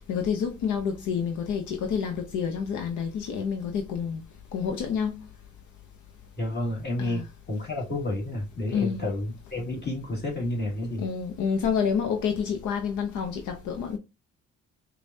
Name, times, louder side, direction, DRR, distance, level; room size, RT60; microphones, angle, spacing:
voice 1, 0.1-4.2 4.5-5.2 7.0-7.3 8.7-9.1 11.0-14.0, left 6 dB, 75° left, 0.7 m, -28 dB
voice 2, 6.4-11.1, left 1 dB, 35° left, 1.9 m, -30 dB
5.0 x 2.3 x 2.6 m
cardioid pair, 90°, 30 cm